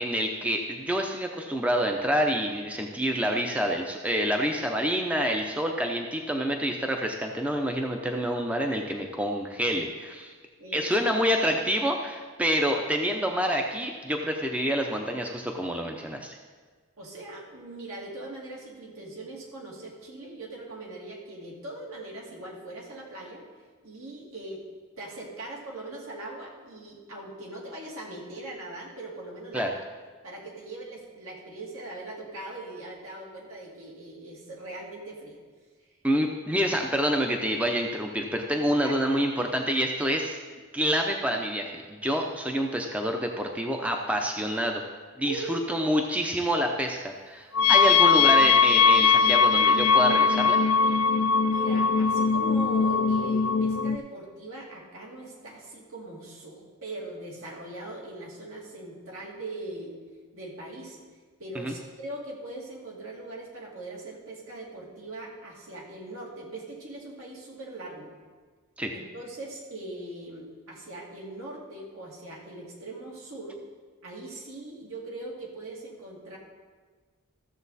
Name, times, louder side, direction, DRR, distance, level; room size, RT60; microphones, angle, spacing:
voice 1, 0.0-10.3 10.7-16.4 29.5-29.7 36.0-40.4 40.7-44.8 45.2-50.6 61.5-61.7 68.8-68.9, equal, 5° right, 2 dB, 0.6 m, -27 dB
voice 2, 10.6-10.9 17.0-23.5 23.8-24.6 25.0-29.7 30.2-35.4 38.8-39.2 45.2-45.6 47.6-47.9 51.4-59.9 60.3-61.0 61.4-68.1 68.9-73.5 74.0-76.4, right 2 dB, 75° right, -3 dB, 2.6 m, -40 dB
sound 1, 47.5-54.0, left 5 dB, 70° left, 0.5 m, -20 dB
14.5 x 7.0 x 4.1 m, 1.4 s
head